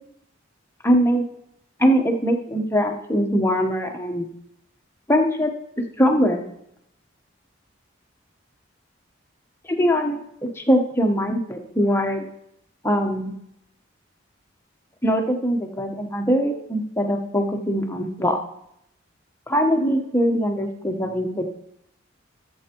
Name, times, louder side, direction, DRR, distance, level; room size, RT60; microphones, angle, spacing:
voice 1, 0.8-1.2 1.8-4.3 5.1-5.5 6.0-6.4 9.7-10.2 10.6-12.3 12.8-13.3 15.0-18.4 19.5-21.5, equal, 10° left, 3 dB, 0.9 m, -21 dB
14.5 x 7.8 x 3.0 m, 0.76 s
head